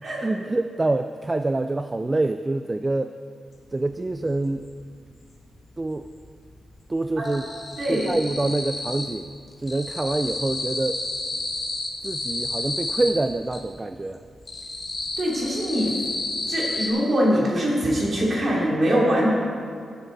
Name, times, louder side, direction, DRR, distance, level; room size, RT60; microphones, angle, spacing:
voice 1, 0.2-3.1 3.7-4.7 5.8-6.1 6.9-7.4 7.9-9.3 9.6-11.0 12.0-14.2, right 2 dB, 20° right, 9 dB, 0.3 m, -26 dB
sound 1, 3.6-3.7 4.0-5.3 5.6-6.3 6.5-9.2 9.5-13.6 14.1-16.9, left 2 dB, 35° left, 1.8 m, -31 dB
voice 2, 7.8-8.1 15.2-15.9 16.5-19.3, equal, 40° right, -4 dB, 3.1 m, -23 dB
17.5 x 7.9 x 4.1 m, 2.2 s
wide cardioid pair, 140°, 0 cm